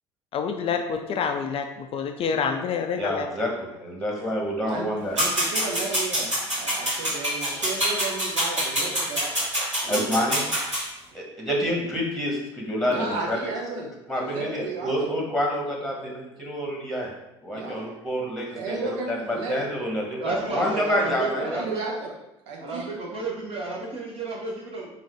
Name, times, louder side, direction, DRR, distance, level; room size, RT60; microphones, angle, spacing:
voice 1, 0.3-1.6 1.9-3.3, left 6 dB, 40° left, 5 dB, 0.4 m, -27 dB
voice 2, 3.0-5.1 9.9-10.5 11.1-13.5 14.1-17.1 17.4-20.2 20.5-21.6, equal, ahead, -2 dB, 1.3 m, -28 dB
voice 3, 5.1-9.3 9.8-10.3 12.8-14.9 17.5-17.9 18.5-19.5 21.3-22.1 22.5-22.9, right 3 dB, 60° right, -1 dB, 0.8 m, -34 dB
sound 1, 5.2-10.8, equal, 85° right, 1.4 m, -26 dB
voice 4, 20.2-21.8 22.6-24.9, right 3 dB, 40° right, -3 dB, 1.0 m, -31 dB
3.9 x 2.5 x 4.5 m, 0.90 s
figure-of-eight pair, 60°, 15 cm